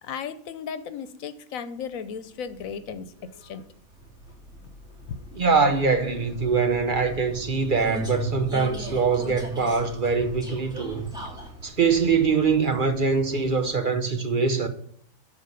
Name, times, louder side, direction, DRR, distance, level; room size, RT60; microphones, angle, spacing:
voice 1, 0.0-3.1 3.4-3.6 5.1-5.2, left 7 dB, 80° left, 1.2 m, -35 dB
Vehicle, 2.1-14.0, right 1 dB, 5° right, 2.4 m, -41 dB
voice 2, 5.4-11.1 11.6-14.7, right 5 dB, 45° right, 1.0 m, -23 dB
12.5 x 4.5 x 6.8 m
omnidirectional pair, 1.4 m